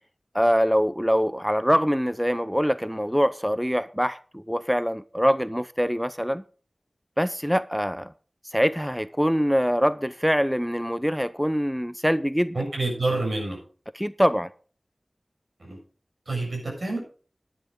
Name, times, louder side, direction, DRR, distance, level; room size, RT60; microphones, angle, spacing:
voice 1, 0.3-6.4 7.2-8.1 8.5-12.6 13.9-14.5, equal, ahead, 0.5 m, -24 dB
voice 2, 12.5-13.6 15.6-15.8 16.3-17.0, right 2 dB, 75° right, 7.5 m, -28 dB
10.5 x 10.5 x 4.9 m
wide cardioid pair, 40°, 0 cm